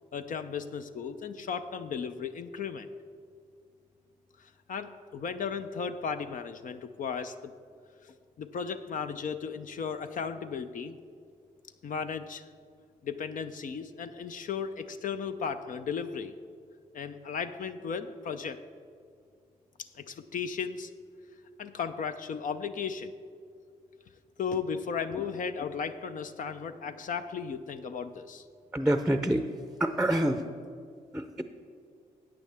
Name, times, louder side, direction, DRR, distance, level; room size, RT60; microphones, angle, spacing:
voice 1, 0.1-2.9 4.4-7.5 8.0-11.0 11.8-12.5 13.0-16.3 16.9-18.6 19.8-20.9 21.6-23.1 24.4-28.4, left 6 dB, 60° left, 8 dB, 0.5 m, -35 dB
voice 2, 28.7-29.5 29.8-30.4 31.1-31.4, right 1 dB, 5° right, 8 dB, 0.6 m, -26 dB
13.5 x 8.7 x 3.5 m, 2.3 s
supercardioid pair, 55°, 15 cm